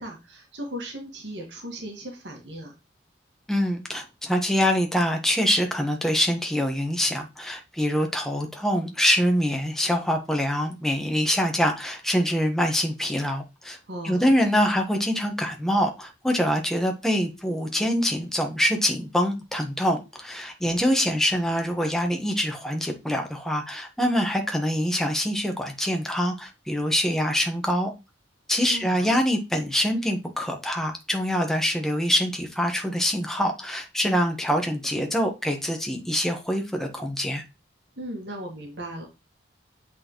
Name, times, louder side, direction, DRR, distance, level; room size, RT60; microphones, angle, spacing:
voice 1, 0.0-2.7 13.9-14.3 28.6-29.1 38.0-39.0, right 1 dB, 80° right, 1.7 m, -37 dB
voice 2, 3.5-13.8 14.0-27.9 28.5-37.4, equal, ahead, 1.1 m, -25 dB
7.6 x 4.2 x 3.0 m
head